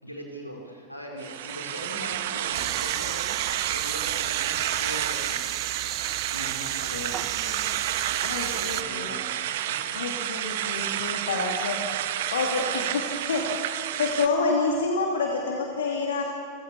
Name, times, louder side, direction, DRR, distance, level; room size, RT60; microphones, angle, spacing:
voice 1, 0.0-3.4 3.6-5.8 6.3-7.7 8.1-9.4 9.9-10.0, equal, 90° left, 0 dB, 4.2 m, -40 dB
sound 1, 1.2-14.3, right 11 dB, 55° right, 1.2 m, -30 dB
sound 2, 2.5-8.8, right 15 dB, 35° right, 0.5 m, -34 dB
voice 2, 8.2-9.1 9.9-11.8 12.3-13.5 14.0-16.2, left 3 dB, 65° left, 1 dB, 2.5 m, -28 dB
29.0 x 16.0 x 7.1 m, 2.5 s
figure-of-eight pair, 90°, 0 cm